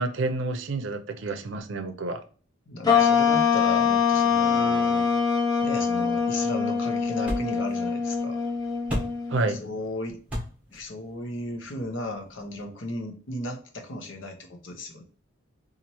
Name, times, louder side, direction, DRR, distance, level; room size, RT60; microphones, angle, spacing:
voice 1, 0.0-2.2 9.3-9.6, right 2 dB, 70° right, 7 dB, 0.5 m, -29 dB
voice 2, 2.7-5.1 5.6-8.4 9.5-10.2 10.7-15.0, left 1 dB, 70° left, 4 dB, 0.8 m, -35 dB
sound 1, 2.8-9.5, left 6 dB, 20° left, 0.7 m, -23 dB
sound 2, 5.6-12.6, equal, 5° right, 1.2 m, -39 dB
4.1 x 2.5 x 2.9 m, 0.40 s
head